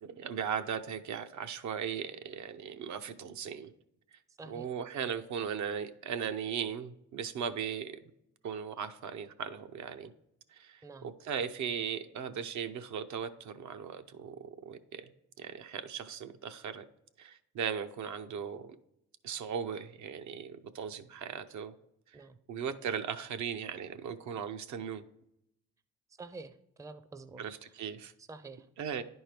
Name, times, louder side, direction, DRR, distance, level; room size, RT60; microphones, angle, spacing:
voice 1, 0.0-3.7 4.4-8.0 8.4-10.1 10.5-15.0 15.4-16.8 17.2-18.8 19.2-21.7 22.5-25.0 27.4-28.1 28.8-29.0, right 7 dB, 70° right, 8 dB, 0.7 m, -38 dB
voice 2, 4.4-4.7 10.8-11.1 22.1-22.4 26.2-27.4 28.3-28.7, right 3 dB, 10° right, 11 dB, 0.5 m, -47 dB
10.0 x 4.5 x 3.3 m, 0.79 s
cardioid pair, 90°, 30 cm